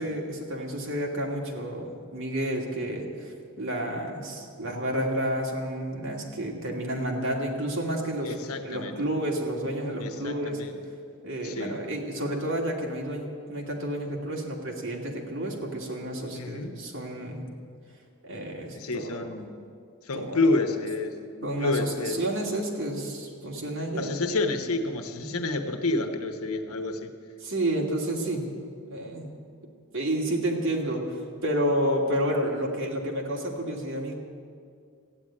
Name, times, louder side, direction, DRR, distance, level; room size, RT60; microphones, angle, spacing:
voice 1, 0.0-8.3 8.6-10.6 11.2-17.4 18.2-19.2 20.1-20.5 21.4-24.1 25.1-25.4 27.4-28.4 28.9-29.3 29.9-34.2, right 1 dB, 60° right, -1 dB, 2.4 m, -30 dB
voice 2, 8.2-9.0 10.0-10.8 11.4-11.8 16.3-16.8 18.7-19.7 20.0-22.2 23.5-23.6 24.0-27.1, left 2 dB, 85° left, 7 dB, 1.1 m, -29 dB
14.5 x 9.0 x 9.9 m, 2.3 s
head